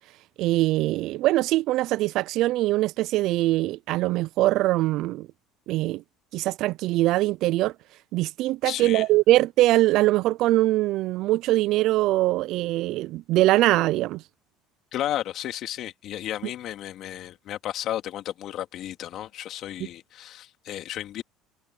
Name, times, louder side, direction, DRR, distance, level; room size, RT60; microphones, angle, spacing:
voice 1, 0.4-5.3 5.7-6.0 6.3-7.7 8.1-14.2, right 17 dB, 65° right, 0.5 m, -22 dB
voice 2, 8.6-9.0 14.9-21.2, left 12 dB, 60° left, 2.9 m, -33 dB
supercardioid pair, 95°, 0 cm